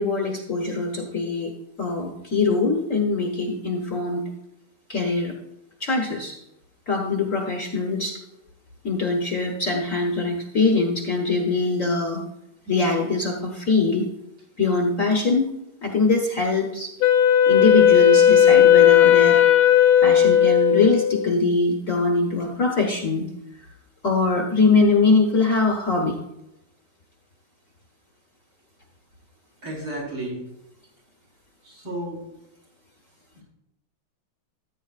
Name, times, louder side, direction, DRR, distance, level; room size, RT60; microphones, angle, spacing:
voice 1, 0.0-1.5 1.8-4.3 4.9-5.3 5.8-6.4 6.9-8.2 8.8-12.2 12.7-14.1 14.6-15.5 15.8-16.9 17.5-19.4 20.0-23.3 24.0-26.2, left 3 dB, 45° left, 1 dB, 1.2 m, -22 dB
Wind instrument woodwind instrument, 17.0-21.3, left 10 dB, 75° left, 1.4 m, -15 dB
voice 2, 29.6-30.4 31.6-32.2 33.3-33.4, right 1 dB, 65° right, -5 dB, 4.9 m, -32 dB
14.0 x 8.8 x 2.4 m, 0.87 s
omnidirectional pair, 2.3 m